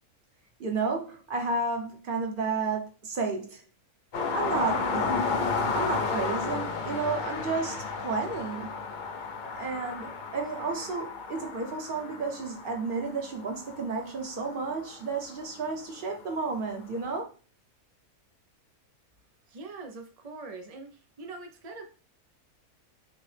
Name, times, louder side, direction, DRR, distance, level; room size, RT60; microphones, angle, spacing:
voice 1, 0.6-3.6 4.3-5.1 5.7-8.7 9.5-17.3, right 4 dB, 45° right, 0.8 m, -32 dB
sound 1, 4.1-15.6 17.0-17.1, left 4 dB, 80° left, 0.4 m, -33 dB
voice 2, 19.5-20.9 21.2-21.9, right 3 dB, 75° right, 0.3 m, -42 dB
6.2 x 2.1 x 3.3 m
omnidirectional pair, 1.6 m